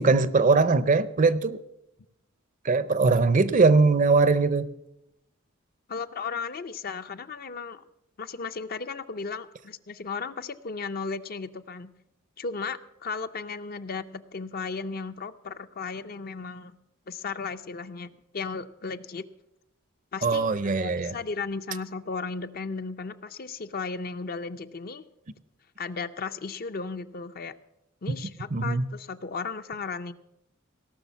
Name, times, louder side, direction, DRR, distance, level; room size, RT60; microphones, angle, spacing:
voice 1, 0.0-1.6 2.6-4.7 20.2-21.1 28.1-28.2 28.5-28.9, right 4 dB, 40° right, 16 dB, 0.5 m, -21 dB
voice 2, 5.9-7.8 8.2-11.9 12.4-16.7 17.1-19.2 20.1-25.0 25.8-27.6 28.0-30.1, left 4 dB, 45° left, 11 dB, 0.5 m, -35 dB
17.5 x 6.3 x 7.2 m, 0.84 s
head